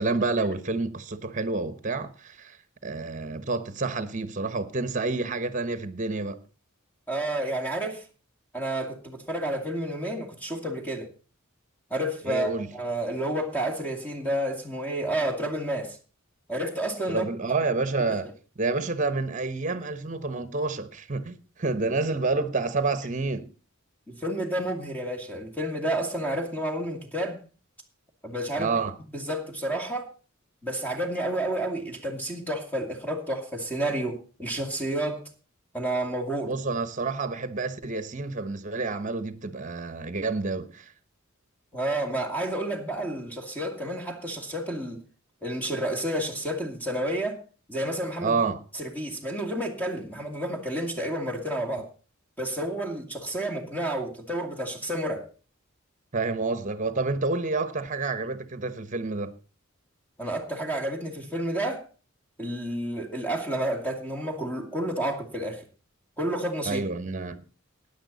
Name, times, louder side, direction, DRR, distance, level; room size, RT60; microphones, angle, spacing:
voice 1, 0.0-2.6 2.8-6.4 12.2-12.7 17.1-18.3 18.6-23.5 28.6-28.9 36.4-40.9 48.2-48.6 56.1-59.3 66.6-67.4, right 3 dB, 35° right, 1.1 m, -29 dB
voice 2, 7.1-8.0 8.5-11.1 11.9-16.0 16.5-17.3 18.1-18.2 24.1-27.4 28.2-28.7 29.1-30.1 30.6-35.3 35.7-36.5 41.7-45.0 45.4-47.4 47.7-48.4 48.7-51.9 52.4-55.3 60.2-61.8 62.4-65.6 66.2-66.9, right 1 dB, 10° left, 2.4 m, -30 dB
16.0 x 9.9 x 4.1 m
head